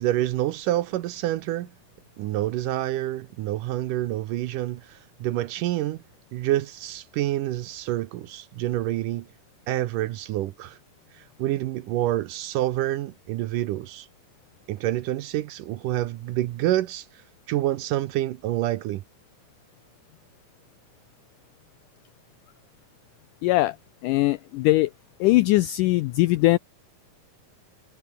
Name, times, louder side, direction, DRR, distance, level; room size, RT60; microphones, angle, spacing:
voice 1, 0.0-1.7 2.2-6.0 6.3-9.3 9.7-10.8 11.1-14.1 14.7-17.1 17.5-19.0, right 14 dB, 70° right, 2.2 m, -27 dB
voice 2, 23.4-23.8 24.0-24.9 25.2-26.6, left 18 dB, 90° left, 1.8 m, -20 dB
omnidirectional pair, 4.3 m